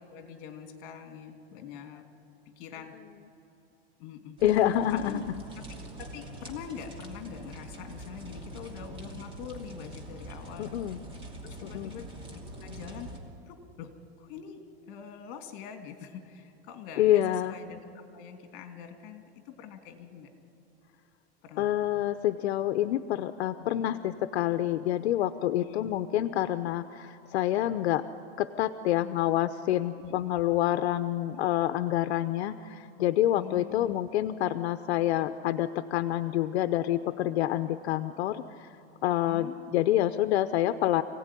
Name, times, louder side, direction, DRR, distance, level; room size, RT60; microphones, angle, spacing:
voice 1, 0.1-2.1 2.6-3.0 4.0-4.4 4.9-5.2 5.7-11.0 11.4-13.2 13.5-20.3 21.4-21.7 23.6-23.9 25.5-25.9 30.0-30.4 33.4-34.0 39.1-39.7, left 8 dB, 45° left, 6 dB, 2.7 m, -44 dB
voice 2, 4.4-5.2 10.6-11.0 11.6-11.9 17.0-17.5 21.6-28.0 28.4-38.7 39.0-41.0, left 12 dB, 80° left, 10 dB, 0.9 m, -27 dB
sound 1, 4.4-13.2, right 1 dB, 15° right, 2.7 m, -44 dB
27.0 x 17.0 x 10.0 m, 2.8 s
supercardioid pair, 165°, 32 cm